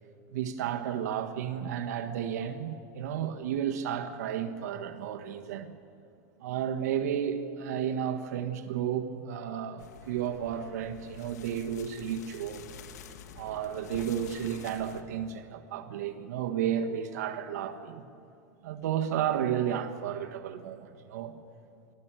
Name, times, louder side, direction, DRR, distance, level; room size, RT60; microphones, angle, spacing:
voice 1, 0.3-5.7 6.4-12.6 13.4-18.1 18.6-21.4, right 9 dB, 80° right, 1.5 m, -32 dB
sound 1, 9.8-15.0, left 7 dB, 90° left, 1.8 m, -48 dB
24.0 x 15.5 x 9.1 m
supercardioid pair, 145°, 9 cm